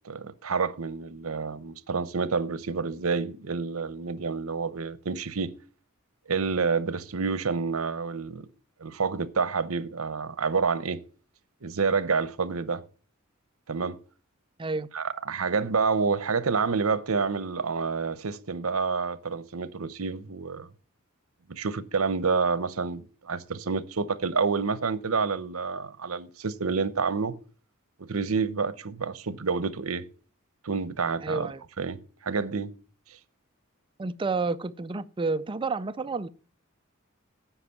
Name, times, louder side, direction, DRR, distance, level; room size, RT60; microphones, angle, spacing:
voice 1, 0.0-5.5 6.3-8.5 8.8-11.0 11.6-12.8 13.7-14.0 14.9-20.7 21.5-27.3 28.0-30.0 30.6-31.5 31.8-32.7, right 5 dB, 80° right, 0.8 m, -28 dB
voice 2, 31.2-31.6 34.0-36.3, right 3 dB, 25° right, 0.4 m, -30 dB
10.0 x 6.0 x 6.9 m
head